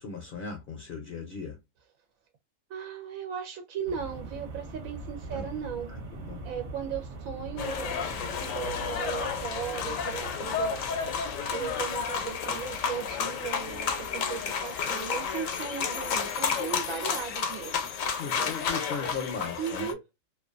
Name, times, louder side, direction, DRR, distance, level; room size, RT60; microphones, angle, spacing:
voice 1, 0.0-1.6 5.3-5.5 5.9-6.4 18.1-19.9, left 4 dB, 55° left, 0.6 m, -38 dB
voice 2, 2.7-5.9 6.4-10.8 11.5-17.9 19.6-20.0, right 8 dB, 90° right, 1.0 m, -37 dB
sound 1, 3.8-14.7, right 1 dB, 65° right, 1.0 m, -43 dB
sound 2, 7.6-19.9, left 6 dB, 80° left, 1.0 m, -31 dB
2.5 x 2.3 x 2.4 m
omnidirectional pair, 1.4 m